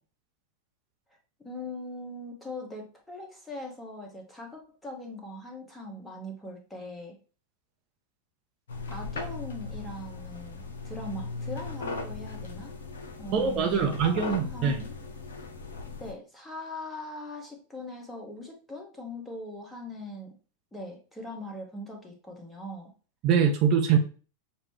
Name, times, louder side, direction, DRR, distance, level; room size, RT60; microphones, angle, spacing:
voice 1, 1.4-7.1 8.9-12.7 13.2-15.0 16.0-20.3 20.7-22.9, left 1 dB, 10° left, 1 dB, 1.1 m, -41 dB
sound 1, 8.7-16.1, left 3 dB, 65° left, 0.6 m, -38 dB
voice 2, 13.3-14.8 23.2-24.0, right 7 dB, 40° right, 3 dB, 0.6 m, -23 dB
6.5 x 2.2 x 3.2 m, 0.37 s
figure-of-eight pair, 90°, 0 cm